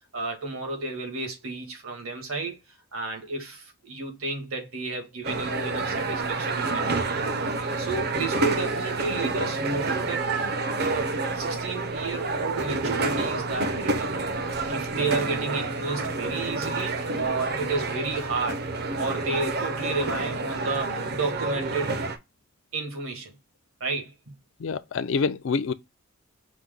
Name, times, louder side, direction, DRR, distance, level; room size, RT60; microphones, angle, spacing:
voice 1, 0.1-2.6 2.9-7.4 7.8-10.4 10.8-14.3 14.7-18.7 19.0-22.0 22.7-23.4 23.8-24.3, right 3 dB, 80° right, 1.8 m, -32 dB
sound 1, 5.2-22.2, right 3 dB, 50° right, 0.6 m, -28 dB
voice 2, 24.6-25.7, left 5 dB, 60° left, 0.4 m, -26 dB
5.9 x 2.2 x 3.7 m
head